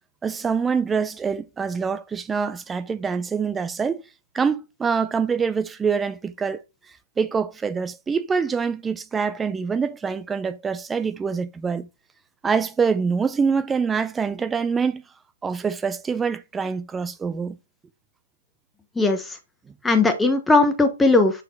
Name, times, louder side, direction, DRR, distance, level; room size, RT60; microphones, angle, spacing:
voice 1, 0.2-4.0 4.3-6.6 7.2-11.9 12.4-15.0 15.4-17.6, right 5 dB, 10° right, 0.4 m, -25 dB
voice 2, 19.0-19.4 19.8-21.4, left 3 dB, 5° left, 1.0 m, -18 dB
6.5 x 4.3 x 4.1 m
hypercardioid pair, 140°, 0 cm